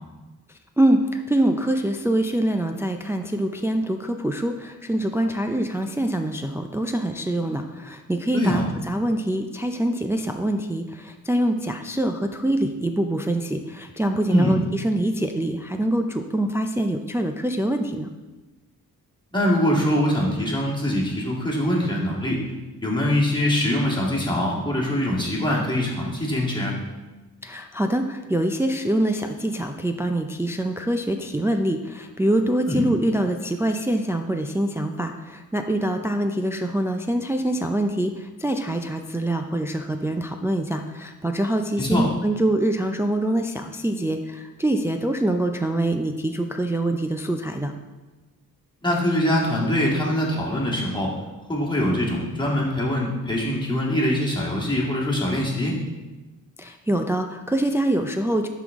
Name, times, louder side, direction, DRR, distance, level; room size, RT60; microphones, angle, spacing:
voice 1, 0.8-18.1 27.4-47.7 56.6-58.5, right 1 dB, 10° right, 5 dB, 0.4 m, -24 dB
voice 2, 8.3-8.7 14.3-14.6 19.3-22.4 22.8-26.7 32.7-32.8 41.8-42.1 48.8-51.2 51.5-55.8, left 1 dB, 15° left, -4 dB, 1.8 m, -23 dB
11.0 x 3.9 x 3.6 m, 1.2 s
cardioid pair, 90°, 35 cm